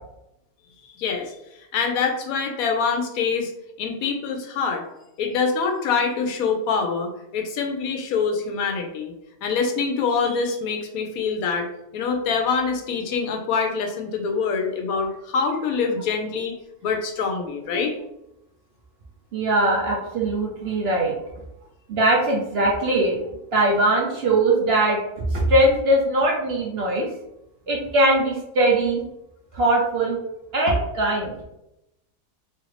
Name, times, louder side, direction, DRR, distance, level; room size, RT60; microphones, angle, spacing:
voice 1, 1.0-1.4 1.7-3.5 3.8-4.8 5.2-9.1 9.4-16.6 16.8-17.9, left 5 dB, 80° left, 4 dB, 1.0 m, -25 dB
voice 2, 19.3-21.1 21.9-23.2 23.5-27.1 27.7-29.0 29.5-30.2 30.5-31.4, right 1 dB, 60° right, -2 dB, 0.7 m, -21 dB
3.1 x 2.5 x 3.2 m, 0.86 s
omnidirectional pair, 1.5 m